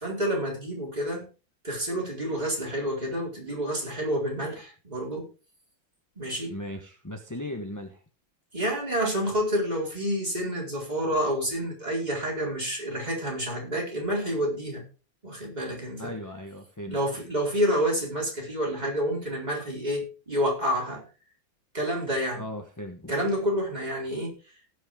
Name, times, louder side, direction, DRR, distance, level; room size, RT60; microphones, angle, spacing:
voice 1, 0.0-1.3 1.6-5.3 6.2-6.5 8.5-14.8 15.2-16.1 16.9-21.0 21.7-22.4 23.1-24.3, equal, 20° right, -2 dB, 4.4 m, -29 dB
voice 2, 6.5-8.0 16.0-17.0 22.4-23.1, left 1 dB, 10° left, 4 dB, 0.9 m, -37 dB
18.0 x 6.5 x 3.7 m, 0.34 s
omnidirectional pair, 2.2 m